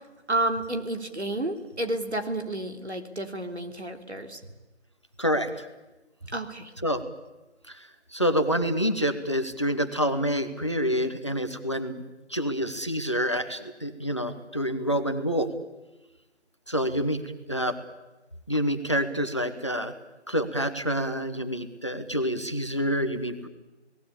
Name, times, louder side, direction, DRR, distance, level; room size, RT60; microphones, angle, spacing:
voice 1, 0.3-4.4 6.3-6.7, right 1 dB, 70° right, 5 dB, 3.4 m, -30 dB
voice 2, 5.2-5.7 6.8-7.0 7.7-7.8 8.1-12.0 12.3-15.5 16.7-17.2 17.5-17.7 18.5-19.9 20.3-23.5, equal, 25° left, 8 dB, 1.2 m, -27 dB
29.0 x 18.5 x 8.7 m, 1.1 s
figure-of-eight pair, 175°, 35 cm